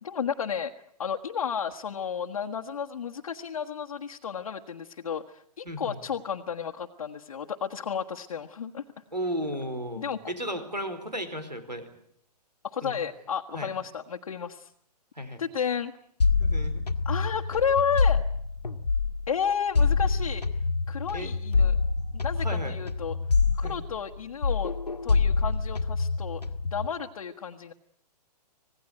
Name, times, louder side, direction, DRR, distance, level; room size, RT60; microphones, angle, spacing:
voice 1, 0.0-0.7 1.0-8.8 10.0-10.2 12.6-14.7 15.4-15.9 17.0-18.2 19.3-20.4 20.9-21.8 22.1-23.2 23.6-24.7 25.0-27.7, left 7 dB, 55° left, 2 dB, 1.5 m, -32 dB
voice 2, 5.6-6.0 9.1-11.9 12.8-13.0 13.5-13.7 15.1-15.4 16.4-16.9 21.1-21.3 22.4-22.7 23.6-23.8, equal, 90° right, 11 dB, 4.5 m, -34 dB
sound 1, 16.2-19.3 19.8-24.2 24.4-26.9, left 4 dB, 75° left, 1.8 m, -26 dB
26.5 x 19.0 x 9.3 m, 0.68 s
figure-of-eight pair, 120°, 21 cm